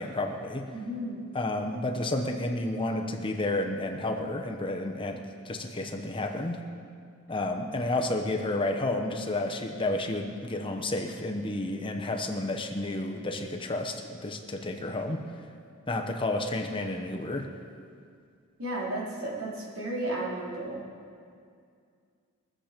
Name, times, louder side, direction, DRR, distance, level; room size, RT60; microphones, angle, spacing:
voice 1, 0.0-0.6 1.3-6.6 7.3-15.2 15.9-17.5, left 2 dB, 25° left, 3 dB, 0.8 m, -31 dB
voice 2, 0.7-1.3 18.6-20.8, right 1 dB, 70° right, -5 dB, 3.7 m, -34 dB
22.0 x 7.6 x 5.1 m, 2.2 s
head